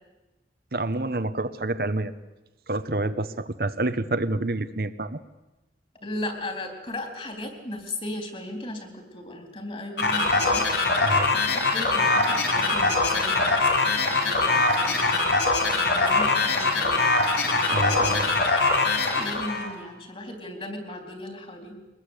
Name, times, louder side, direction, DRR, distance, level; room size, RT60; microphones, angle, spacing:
voice 1, 0.7-2.1 2.7-5.2 11.0-11.3 17.7-18.4, right 2 dB, 55° right, 11 dB, 1.0 m, -28 dB
voice 2, 6.0-10.7 11.3-13.6 13.9-18.1 19.0-21.8, left 1 dB, 30° left, 5 dB, 3.9 m, -37 dB
sound 1, 10.0-19.7, left 3 dB, 80° left, 4.8 m, -22 dB
23.0 x 20.5 x 8.4 m, 1.0 s
head